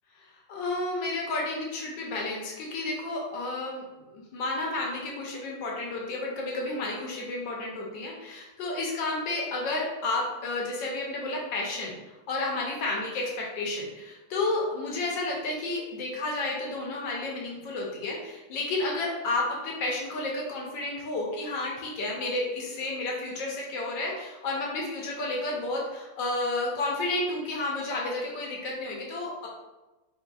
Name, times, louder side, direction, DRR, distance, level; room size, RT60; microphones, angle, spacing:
voice 1, 0.2-3.8 4.1-12.0 12.3-29.5, left 2 dB, 70° left, -2 dB, 1.3 m, -31 dB
3.9 x 2.8 x 2.3 m, 1.1 s
omnidirectional pair, 2.3 m